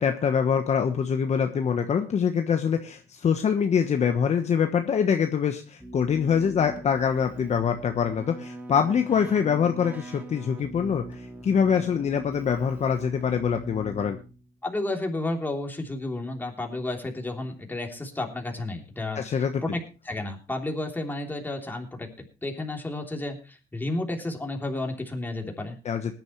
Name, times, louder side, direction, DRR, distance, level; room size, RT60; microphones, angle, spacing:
voice 1, 0.0-14.2 19.1-19.6 25.8-26.1, left 7 dB, 40° left, 6 dB, 1.2 m, -24 dB
Keyboard (musical), 5.8-14.5, right 1 dB, 10° right, 2.6 m, -42 dB
voice 2, 14.6-19.2 19.6-19.8 20.0-22.1 22.4-25.8, left 2 dB, 10° left, 2 dB, 3.3 m, -31 dB
20.0 x 10.5 x 3.2 m, 0.34 s
cardioid pair, 110°, 17 cm